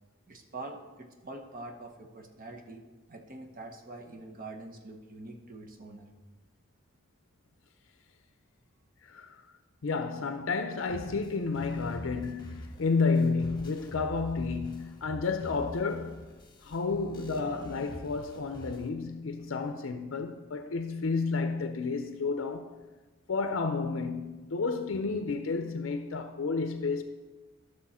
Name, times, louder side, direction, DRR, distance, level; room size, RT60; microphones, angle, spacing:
voice 1, 0.3-6.1, right 2 dB, 45° right, 1.1 m, -45 dB
voice 2, 9.0-9.4 9.8-16.2 16.6-22.7 23.3-27.0, left 4 dB, 70° left, 0.5 m, -31 dB
sound 1, 10.9-18.9, equal, 20° left, 1.2 m, -45 dB
12.5 x 6.4 x 4.2 m
head